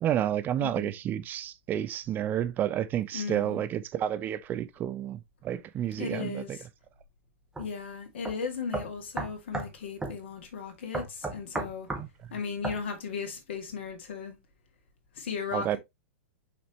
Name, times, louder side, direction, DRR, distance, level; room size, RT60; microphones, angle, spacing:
voice 1, 0.0-6.6 12.0-12.1 15.5-15.8, right 11 dB, 25° right, 0.5 m, -30 dB
voice 2, 0.6-0.9 3.1-3.6 6.0-6.6 7.6-11.9 12.3-14.4 15.1-15.8, left 5 dB, 60° left, 2.1 m, -36 dB
sound 1, 7.6-7.7 8.3-8.4 8.7-9.7 10.0-10.2 10.9-12.1 12.6-12.8, right 3 dB, 10° right, 1.6 m, -34 dB
6.3 x 5.1 x 2.9 m
figure-of-eight pair, 100°, 7 cm